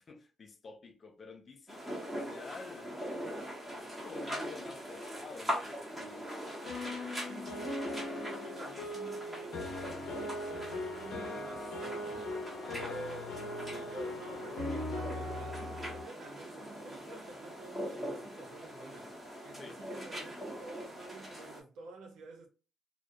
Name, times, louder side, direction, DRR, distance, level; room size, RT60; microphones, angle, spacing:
voice 1, 0.1-3.1 3.7-6.3 12.6-13.0 19.5-19.8, left 4 dB, 40° left, 0.5 m, -50 dB
sound 1, 1.7-21.6, equal, 15° right, 1.1 m, -42 dB
sound 2, 6.0-16.0, left 1 dB, 85° left, 0.8 m, -40 dB
voice 2, 7.3-10.1 10.5-12.3 12.8-13.3 13.6-19.1 19.4-22.5, right 3 dB, 85° right, 0.8 m, -49 dB
2.4 x 2.1 x 2.6 m
cardioid pair, 90°, 0 cm